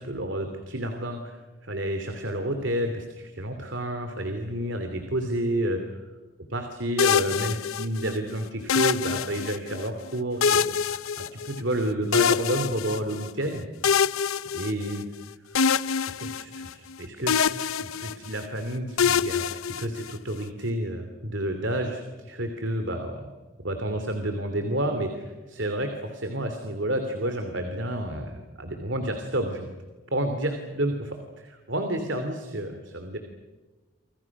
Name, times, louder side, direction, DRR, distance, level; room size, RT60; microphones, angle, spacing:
voice 1, 0.0-5.8 6.5-13.7 14.5-15.0 16.1-23.3 23.6-29.7 30.1-33.2, right 1 dB, 60° right, 6 dB, 2.9 m, -30 dB
sound 1, 7.0-8.2 8.7-9.8 10.4-11.8 12.1-13.3 13.8-15.2 15.6-17.0 17.3-18.5 19.0-20.3, left 7 dB, 85° left, 0.7 m, -25 dB
29.0 x 27.0 x 6.1 m, 1.3 s
head